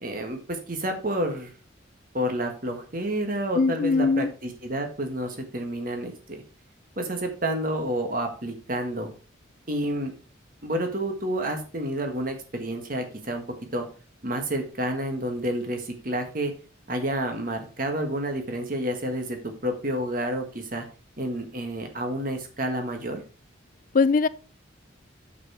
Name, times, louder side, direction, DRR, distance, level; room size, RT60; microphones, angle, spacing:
voice 1, 0.0-1.5 2.1-6.4 7.0-9.1 9.7-10.1 10.6-13.4 13.7-13.9 14.2-16.5 16.9-20.9 21.2-23.2, right 1 dB, 45° right, 1.6 m, -29 dB
voice 2, 3.6-4.3 23.9-24.3, left 4 dB, 40° left, 0.4 m, -21 dB
7.0 x 6.1 x 4.9 m
head